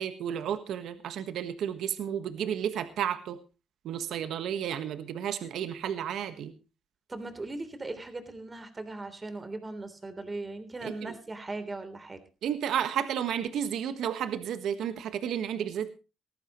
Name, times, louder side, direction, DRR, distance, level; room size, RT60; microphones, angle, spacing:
voice 1, 0.0-3.4 3.8-6.5 10.8-11.1 12.4-15.9, right 9 dB, 75° right, 10 dB, 1.4 m, -32 dB
voice 2, 7.1-12.2, right 2 dB, 25° right, 9 dB, 3.4 m, -39 dB
18.5 x 14.0 x 3.1 m, 0.31 s
cardioid pair, 90°, 0 cm